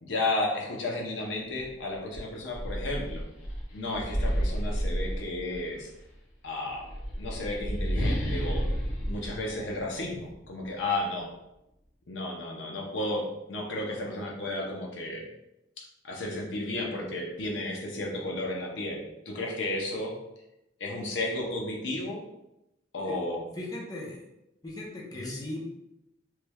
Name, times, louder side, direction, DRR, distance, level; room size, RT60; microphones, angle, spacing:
voice 1, 0.0-3.2 3.7-5.9 6.4-6.9 7.2-8.6 9.1-11.3 12.1-15.2 16.0-20.1 20.8-22.2 22.9-23.4 25.2-25.3, left 2 dB, 70° left, -1 dB, 0.7 m, -33 dB
sound 1, 1.6-1.7 2.1-5.8 6.7-10.3, equal, 90° left, 1.0 m, -31 dB
voice 2, 23.5-24.2 24.6-25.6, left 1 dB, 20° left, -4 dB, 0.6 m, -38 dB
3.2 x 3.1 x 2.3 m, 0.88 s
head